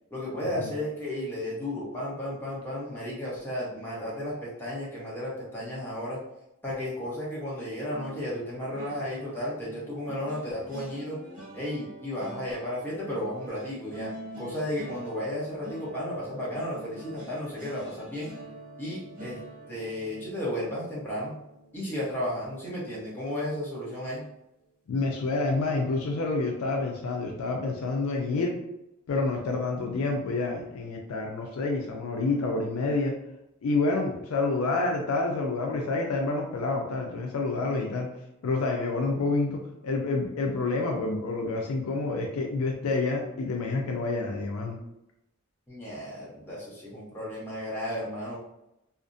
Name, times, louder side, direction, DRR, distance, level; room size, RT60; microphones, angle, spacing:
voice 1, 0.1-6.2 6.6-11.2 11.5-14.1 14.4-18.3 18.8-19.4 19.7-21.3 21.7-24.2 45.7-48.4, left 1 dB, 10° left, -7 dB, 0.8 m, -33 dB
sound 1, 7.9-23.0 23.4-23.7 24.0-24.2, right 1 dB, 40° right, 0.7 m, -46 dB
voice 2, 24.9-28.5 29.1-33.1 33.6-38.1 38.4-44.8, left 3 dB, 80° left, 1 dB, 0.4 m, -28 dB
2.4 x 2.0 x 2.5 m, 0.85 s
head